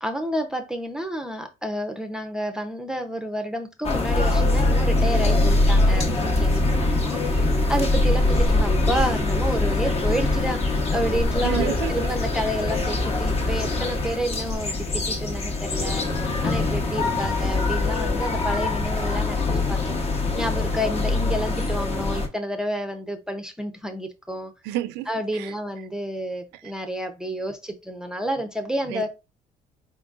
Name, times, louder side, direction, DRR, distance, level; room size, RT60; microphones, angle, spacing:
voice 1, 0.0-6.6 6.9-19.4 19.7-20.0 20.3-24.5 25.1-29.1, equal, 5° right, 0.6 m, -30 dB
sound 1, 3.8-22.3, left 2 dB, 40° left, 1.0 m, -23 dB
voice 2, 11.4-12.1 24.6-25.5 28.9-29.0, right 14 dB, 90° right, 0.5 m, -30 dB
4.5 x 3.8 x 2.4 m
cardioid pair, 110°, 17 cm